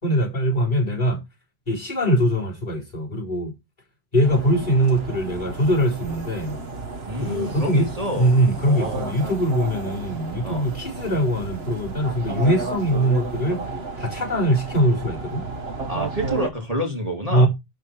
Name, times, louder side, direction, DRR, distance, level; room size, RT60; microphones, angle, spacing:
voice 1, 0.0-1.2 1.7-3.5 4.1-6.6 7.2-7.9 8.1-13.6 14.0-15.4 17.3-17.5, equal, 45° left, 4.5 m, -22 dB
sound 1, 4.2-16.5, right 3 dB, 75° right, 1.5 m, -33 dB
voice 2, 7.1-8.3 8.6-9.1 10.4-10.6 15.9-17.5, equal, 35° right, 3.3 m, -28 dB
12.0 x 5.3 x 4.6 m
omnidirectional pair, 1.1 m